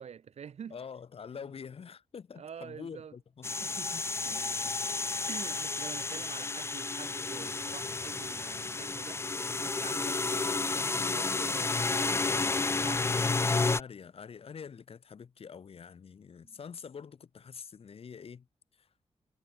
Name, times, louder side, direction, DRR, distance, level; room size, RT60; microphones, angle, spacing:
voice 1, 0.0-0.8 2.4-3.1 3.6-4.7 5.3-9.2 9.6-13.1 16.4-16.6, right 7 dB, 70° right, 2.0 m, -47 dB
voice 2, 0.7-3.6 3.9-4.0 13.6-18.5 18.8-18.9, left 6 dB, 60° left, 3.0 m, -46 dB
sound 1, 3.4-13.8, left 3 dB, 25° left, 0.5 m, -31 dB
wide cardioid pair, 140°, 11 cm